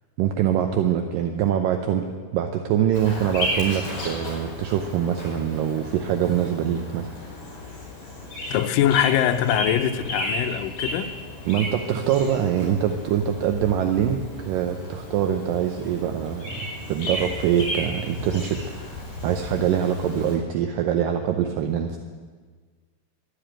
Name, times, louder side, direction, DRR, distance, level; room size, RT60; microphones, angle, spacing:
voice 1, 0.2-7.1 11.5-18.6 19.2-22.0, right 9 dB, 80° right, 2.0 m, -24 dB
Bird vocalization bird call bird song, 2.9-20.4, left 1 dB, 35° left, 5.7 m, -34 dB
voice 2, 8.5-11.1, left 10 dB, 90° left, 1.9 m, -22 dB
12.5 x 9.8 x 8.8 m
omnidirectional pair, 4.7 m